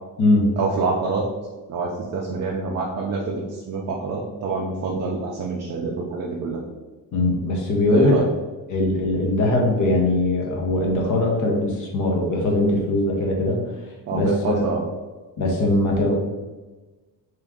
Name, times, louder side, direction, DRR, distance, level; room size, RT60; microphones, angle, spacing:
voice 1, 0.6-1.3 1.7-6.6 7.9-8.3 14.1-14.8, right 3 dB, 40° right, -2 dB, 0.5 m, -26 dB
voice 2, 7.1-8.1 8.7-13.6 14.1-14.6 15.4-16.1, left 2 dB, 50° left, 0 dB, 0.8 m, -21 dB
3.6 x 3.0 x 3.6 m, 1.2 s
cardioid pair, 175°, 40 cm